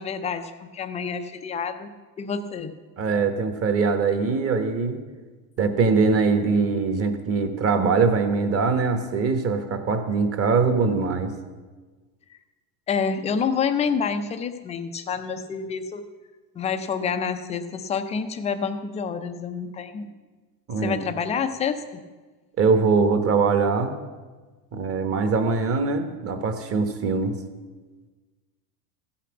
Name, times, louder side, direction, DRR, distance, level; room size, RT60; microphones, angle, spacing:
voice 1, 0.0-2.7 12.9-16.0 16.6-20.1 20.8-22.0, left 6 dB, 15° left, 8 dB, 0.4 m, -28 dB
voice 2, 3.0-5.0 5.6-11.3 20.7-21.0 22.6-23.9 24.7-27.3, right 4 dB, 30° right, 7 dB, 1.2 m, -22 dB
15.5 x 5.9 x 7.1 m, 1.3 s
supercardioid pair, 140°, 48 cm